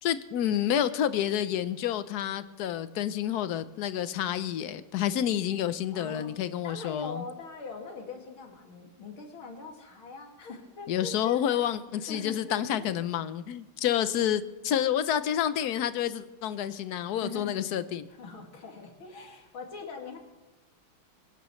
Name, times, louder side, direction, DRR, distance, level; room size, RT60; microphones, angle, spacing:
voice 1, 0.0-7.3 10.9-18.1, left 10 dB, 65° left, 13 dB, 1.0 m, -29 dB
voice 2, 5.9-6.3 6.6-11.7 12.0-12.9 13.9-14.1 17.1-17.6 18.1-20.2, left 4 dB, 90° left, 2 dB, 3.0 m, -42 dB
23.0 x 11.5 x 3.2 m, 1.1 s
omnidirectional pair, 2.2 m